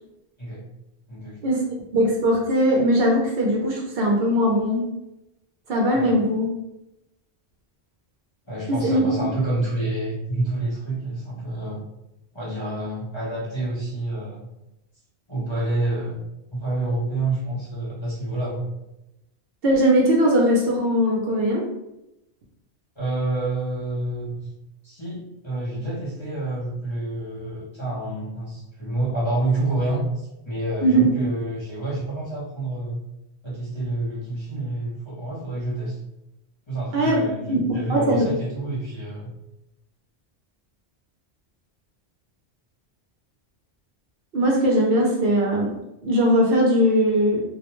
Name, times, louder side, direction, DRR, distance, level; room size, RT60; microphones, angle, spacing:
voice 1, 1.9-4.8 5.7-6.5 8.7-9.0 19.6-21.6 30.8-31.1 36.9-37.2 37.5-37.6 37.9-38.3 44.3-45.7 46.0-47.4, equal, 65° right, -1 dB, 0.7 m, -20 dB
voice 2, 8.5-11.8 12.3-14.5 15.3-16.2 16.5-18.7 23.0-24.5 24.8-33.0 33.4-36.0 36.7-39.3, right 2 dB, 30° left, -9 dB, 0.7 m, -28 dB
2.4 x 2.1 x 2.9 m, 0.90 s
omnidirectional pair, 1.1 m